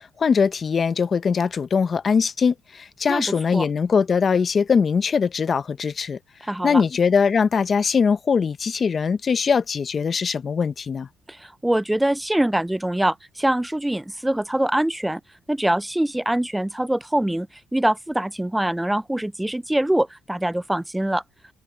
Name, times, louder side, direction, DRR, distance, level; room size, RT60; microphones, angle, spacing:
voice 1, 0.2-6.2 6.6-11.1, left 6 dB, 40° left, 1.0 m, -21 dB
voice 2, 3.1-3.7 6.4-6.8 11.3-15.2 15.5-21.2, right 1 dB, 5° right, 0.4 m, -24 dB
cardioid pair, 85°, 0 cm